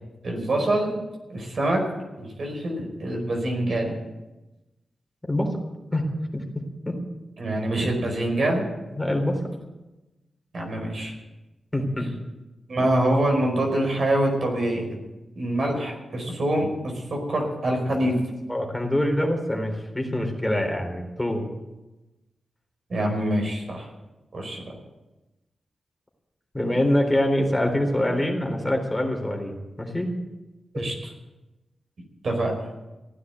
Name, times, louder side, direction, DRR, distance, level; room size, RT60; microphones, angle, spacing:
voice 1, 0.2-1.0 1.3-1.8 2.2-3.9 7.4-8.7 10.5-11.2 12.7-15.0 15.4-18.2 22.9-23.9 24.3-24.6 30.7-31.1 32.2-32.5, right 1 dB, 65° right, 2 dB, 4.8 m, -25 dB
voice 2, 5.3-5.6 5.9-6.4 6.9-7.0 9.0-9.4 11.7-12.1 18.5-21.5 26.5-30.1, left 1 dB, 15° left, 2 dB, 3.8 m, -25 dB
16.0 x 9.6 x 8.0 m, 1.1 s
cardioid pair, 55°, 0 cm